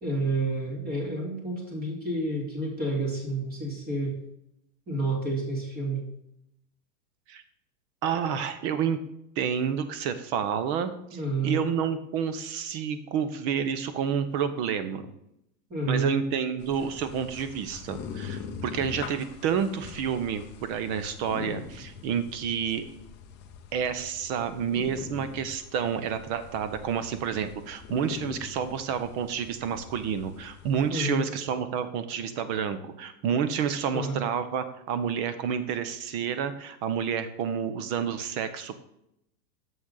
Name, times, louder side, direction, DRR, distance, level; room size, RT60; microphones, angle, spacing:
voice 1, 0.0-4.1 4.9-6.0 11.1-11.6 15.7-16.1 30.9-31.3 33.9-34.2, right 2 dB, 20° right, -1 dB, 2.6 m, -29 dB
voice 2, 8.0-9.0 9.4-15.0 15.9-22.8 23.7-38.9, right 7 dB, 40° right, 11 dB, 0.9 m, -29 dB
sound 1, 16.6-30.9, left 7 dB, 20° left, 0.5 m, -43 dB
7.2 x 6.1 x 4.0 m, 0.78 s
hypercardioid pair, 135°, 50 cm